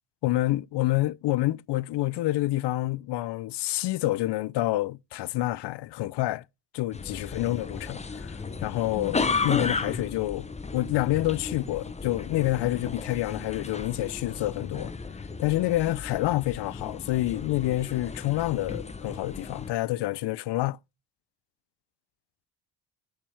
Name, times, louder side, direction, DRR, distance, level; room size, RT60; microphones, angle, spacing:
voice 1, 0.2-6.4 6.7-14.9 15.4-20.8, left 16 dB, 75° left, 0.6 m, -28 dB
sound 1, 6.9-19.7, left 4 dB, 15° left, 0.8 m, -34 dB
6.7 x 5.9 x 3.3 m
cardioid pair, 80°, 42 cm